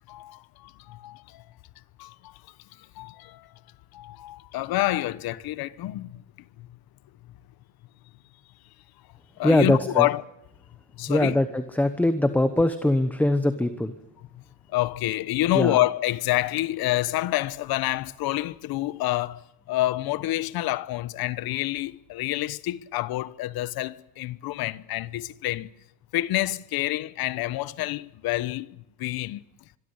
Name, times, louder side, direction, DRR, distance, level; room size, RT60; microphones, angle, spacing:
voice 1, 0.1-1.4 2.0-2.4 2.8-3.5 3.9-6.2 6.6-6.7 9.4-10.2 10.9-11.4 14.3-14.4 14.7-25.7 26.1-29.4, left 16 dB, 60° left, 1.2 m, -28 dB
voice 2, 9.4-10.1 11.1-13.9 15.5-15.8, left 1 dB, 5° left, 1.0 m, -22 dB
26.0 x 22.5 x 8.2 m
cardioid pair, 175°, 42 cm